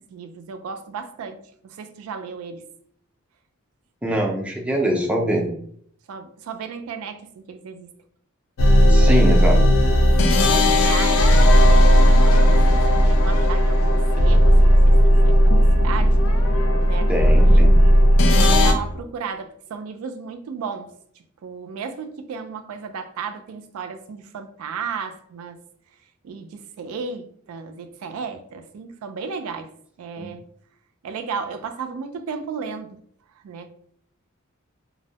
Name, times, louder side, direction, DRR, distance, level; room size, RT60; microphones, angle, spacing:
voice 1, 0.0-1.4 1.6-2.6 6.1-7.9 10.2-16.2 16.7-17.7 18.3-20.9 21.4-25.6 26.2-29.7 30.0-30.5 31.0-33.0 33.4-33.7, right 5 dB, 85° right, 0.3 m, -34 dB
voice 2, 4.0-5.4 8.9-9.6 17.1-17.8 30.2-30.3, equal, 5° right, 0.4 m, -23 dB
sound 1, 8.6-18.7, equal, 70° left, 0.4 m, -15 dB
2.5 x 2.0 x 2.7 m
head